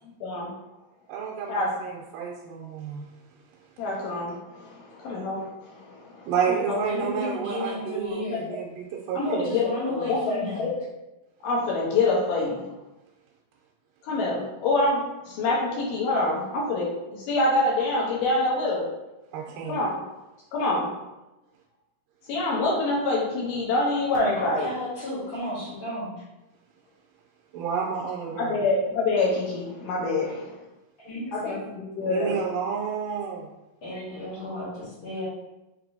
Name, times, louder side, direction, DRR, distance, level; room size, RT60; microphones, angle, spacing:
voice 1, 0.2-0.5 1.5-1.7 3.8-6.8 8.3-8.6 9.2-10.7 11.4-12.7 14.0-18.9 19.7-19.9 20.5-20.9 22.3-24.7 28.4-30.6 31.3-32.4, left 2 dB, 80° left, -4 dB, 2.5 m, -26 dB
voice 2, 1.1-3.1 6.3-9.4 19.3-19.8 27.5-28.6 32.0-33.5, right 7 dB, 90° right, -3 dB, 2.2 m, -30 dB
voice 3, 6.7-8.5 9.1-10.7 24.1-26.1 31.0-31.6 33.8-35.2, left 1 dB, 55° left, -12 dB, 1.6 m, -33 dB
5.8 x 3.1 x 2.6 m, 0.98 s
omnidirectional pair, 3.8 m